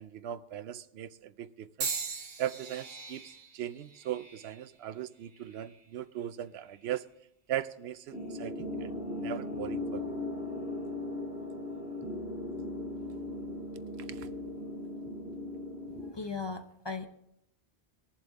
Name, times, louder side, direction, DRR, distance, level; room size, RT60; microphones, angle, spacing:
voice 1, 0.0-2.0 2.4-7.1 7.5-10.1 14.1-14.3, right 11 dB, 90° right, 0.8 m, -39 dB
sound 1, 1.8-5.9 6.6-7.1 8.0-8.2, right 5 dB, 65° right, 1.1 m, -41 dB
sound 2, 8.1-16.1, left 2 dB, 5° right, 1.4 m, -38 dB
voice 2, 15.9-17.1, left 4 dB, 30° left, 0.6 m, -38 dB
21.5 x 7.3 x 3.5 m
omnidirectional pair, 1.0 m